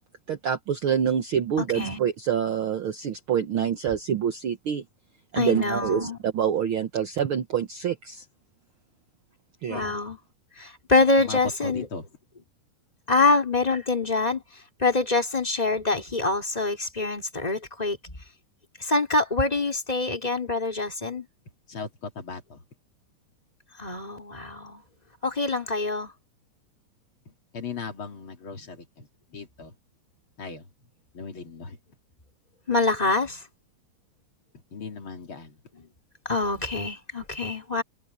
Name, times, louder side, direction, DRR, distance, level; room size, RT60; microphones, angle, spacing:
voice 1, 0.3-4.8 5.3-8.2 9.6-9.9, right 8 dB, 75° right, 1.2 m, -26 dB
voice 2, 1.6-2.0 5.3-6.2 9.7-10.2 10.6-11.9 13.1-18.2 18.8-21.3 23.8-24.8 25.2-26.1 32.7-33.4 36.3-37.8, left 3 dB, 10° left, 3.7 m, -25 dB
voice 3, 11.2-12.1 21.7-22.6 27.3-29.7 30.4-30.7 31.1-31.8 34.7-35.6, left 5 dB, 40° left, 3.1 m, -38 dB
omnidirectional pair, 4.1 m